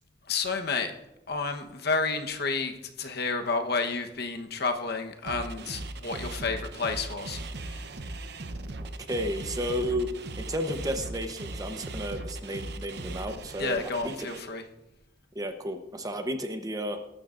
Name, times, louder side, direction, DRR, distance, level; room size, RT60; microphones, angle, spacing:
voice 1, 0.3-0.9 1.3-7.8 13.5-14.6, left 4 dB, 60° left, 5 dB, 1.2 m, -31 dB
sound 1, 5.3-14.4, right 2 dB, 60° right, 0.9 m, -38 dB
voice 2, 9.1-10.1 10.4-14.4 15.3-17.0, equal, 20° right, 6 dB, 1.0 m, -32 dB
22.0 x 12.0 x 2.6 m, 0.94 s
head